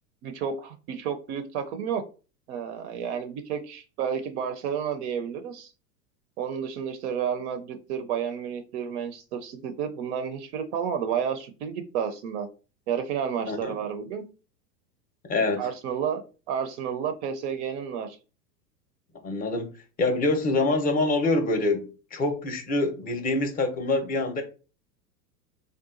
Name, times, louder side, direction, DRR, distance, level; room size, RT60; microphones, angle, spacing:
voice 1, 0.2-2.0 2.5-5.7 6.4-12.5 12.9-14.3 15.6-16.2 16.5-18.2, right 7 dB, 45° right, 0.5 m, -31 dB
voice 2, 13.4-13.8 15.3-15.7 19.2-19.7 20.0-24.4, left 2 dB, 20° left, 0.7 m, -25 dB
3.7 x 2.3 x 2.5 m
hypercardioid pair, 100°, 48 cm